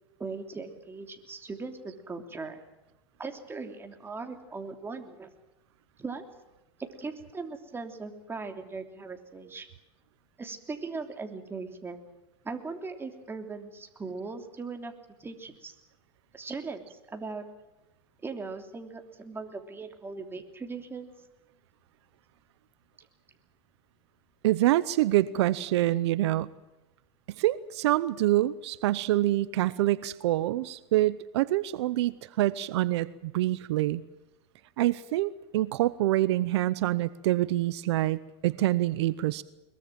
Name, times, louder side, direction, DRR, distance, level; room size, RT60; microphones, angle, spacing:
voice 1, 0.2-2.6 3.2-5.3 6.0-6.2 6.8-9.7 10.4-12.0 12.4-14.9 15.2-15.7 16.3-17.4 18.2-21.1, right 4 dB, 15° right, 5 dB, 3.1 m, -39 dB
voice 2, 24.4-26.5 27.3-34.0 34.8-39.4, right 15 dB, 75° right, 17 dB, 0.8 m, -26 dB
22.0 x 22.0 x 7.6 m, 1.0 s
supercardioid pair, 115°, 14 cm